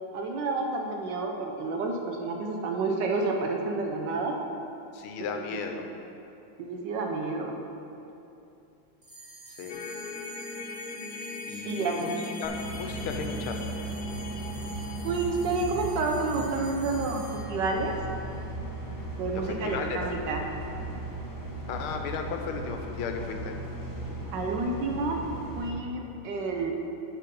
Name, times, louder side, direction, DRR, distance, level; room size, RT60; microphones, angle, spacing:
voice 1, 0.1-4.4 6.6-7.6 11.7-12.1 15.0-17.9 19.2-20.4 24.3-25.2 25.5-26.7, right 3 dB, 65° right, 2 dB, 1.3 m, -29 dB
voice 2, 4.9-5.9 9.6-9.8 11.5-12.1 12.4-13.6 19.3-20.0 21.7-23.5, left 6 dB, 85° left, 4 dB, 1.6 m, -35 dB
sound 1, 9.0-19.7, right 3 dB, 35° right, 1.7 m, -49 dB
sound 2, 9.7-17.0, left 2 dB, 65° left, 0.9 m, -39 dB
sound 3, 12.4-25.7, right 2 dB, 30° left, 0.4 m, -37 dB
9.2 x 5.7 x 5.4 m, 2.8 s
omnidirectional pair, 2.3 m